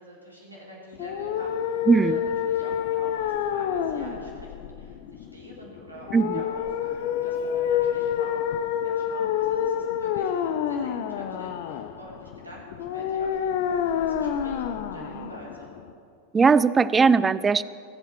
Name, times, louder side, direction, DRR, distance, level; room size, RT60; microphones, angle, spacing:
voice 1, 0.0-1.8 2.1-8.4 8.8-15.7, equal, 85° right, -4 dB, 3.5 m, -46 dB
sound 1, 0.9-15.9, left 9 dB, 50° left, 0.7 m, -28 dB
voice 2, 1.9-2.2 6.1-6.4 16.3-17.6, right 5 dB, 15° right, 17 dB, 0.3 m, -19 dB
21.0 x 8.1 x 4.5 m, 2.3 s
figure-of-eight pair, 90°, 0 cm